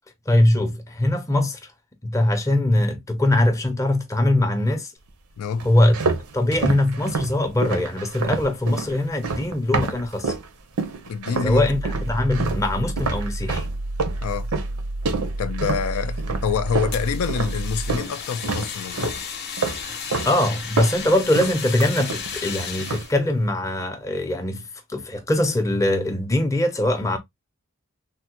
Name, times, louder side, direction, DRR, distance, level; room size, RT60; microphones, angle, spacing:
voice 1, 0.3-1.6 2.0-4.9 5.6-6.0 6.3-10.3 11.4-13.7 19.9-27.2, left 1 dB, 15° left, 0.5 m, -22 dB
sound 1, 5.6-10.5 10.8-11.6 11.9-18.1 18.4-19.2 19.6-20.3 20.6-22.5 22.8-23.2, right 4 dB, 70° right, 0.6 m, -28 dB
voice 2, 11.1-11.6 14.2-14.5 15.4-19.2, left 6 dB, 70° left, 0.4 m, -26 dB
sound 2, 11.5-18.0, right 1 dB, 40° right, 0.3 m, -30 dB
Fire, 16.9-23.1, left 6 dB, 50° left, 0.7 m, -34 dB
3.4 x 2.1 x 2.8 m
head